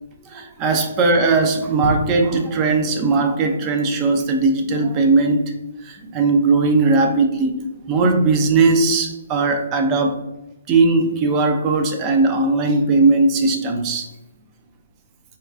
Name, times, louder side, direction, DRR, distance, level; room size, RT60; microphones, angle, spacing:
voice 1, 0.2-5.5 5.8-7.6 7.9-10.1 10.7-14.1, right 3 dB, 25° right, 4 dB, 0.5 m, -18 dB
4.2 x 2.3 x 2.5 m, 0.91 s
hypercardioid pair, 145°, 0 cm